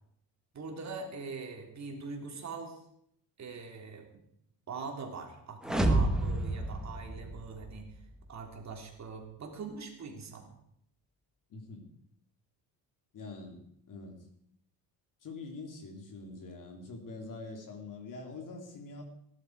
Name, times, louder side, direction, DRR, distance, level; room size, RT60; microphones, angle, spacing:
voice 1, 0.5-2.8 3.4-4.1 4.7-7.9 8.3-10.5, right 4 dB, 40° right, 2 dB, 3.3 m, -42 dB
sound 1, 5.6-7.8, right 2 dB, ahead, 1.5 m, -29 dB
voice 2, 11.5-11.9 13.1-14.2 15.2-19.0, left 3 dB, 45° left, 3 dB, 3.3 m, -44 dB
19.0 x 11.5 x 4.8 m, 0.71 s
cardioid pair, 130°, 42 cm